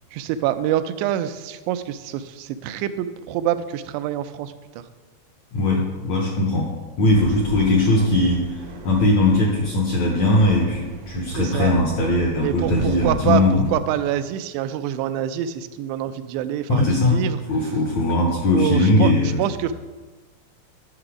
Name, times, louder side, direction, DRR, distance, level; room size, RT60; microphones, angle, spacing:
voice 1, 0.1-4.8 11.4-11.7 12.4-17.4 18.5-19.7, right 11 dB, 90° right, 11 dB, 2.7 m, -26 dB
voice 2, 5.5-13.6 16.7-17.2 17.5-19.4, left 2 dB, 70° left, -1 dB, 1.7 m, -20 dB
sound 1, 7.1-13.7, right 2 dB, 75° right, 1.3 m, -35 dB
12.0 x 6.8 x 4.9 m, 1.3 s
omnidirectional pair, 4.8 m